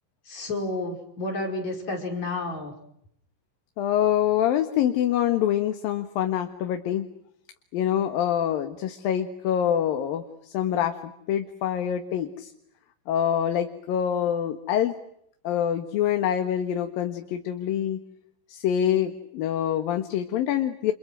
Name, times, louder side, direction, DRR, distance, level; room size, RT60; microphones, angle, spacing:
voice 1, 0.3-2.7, left 2 dB, 55° left, 3 dB, 6.5 m, -31 dB
voice 2, 3.8-7.1 7.7-10.2 10.5-11.0 11.3-12.5 13.1-15.0 15.4-18.0 18.5-20.9, left 10 dB, 85° left, 7 dB, 3.3 m, -25 dB
30.0 x 29.5 x 6.3 m, 0.73 s
omnidirectional pair, 4.0 m